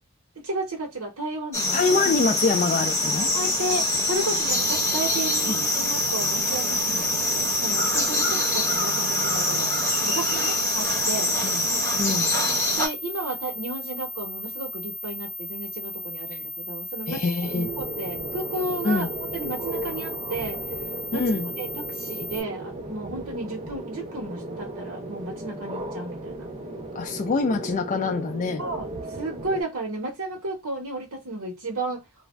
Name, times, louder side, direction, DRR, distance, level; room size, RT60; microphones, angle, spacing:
voice 1, 0.3-1.8 3.3-9.7 10.0-11.3 12.1-12.2 12.8-17.2 17.8-20.6 21.1-21.2 21.6-26.5 28.6-32.0, right 2 dB, 75° right, 1.1 m, -33 dB
sound 1, 1.5-12.9, left 2 dB, 10° left, 1.0 m, -24 dB
voice 2, 1.7-3.3 5.5-5.6 11.4-11.6 12.0-12.3 16.3-16.4 17.1-17.7 18.8-19.1 21.1-21.5 26.9-28.6, left 4 dB, 35° left, 0.3 m, -25 dB
sound 2, 4.5-22.4, left 2 dB, 75° left, 0.8 m, -36 dB
sound 3, 17.4-29.6, right 2 dB, 30° right, 0.5 m, -35 dB
2.4 x 2.2 x 3.1 m
head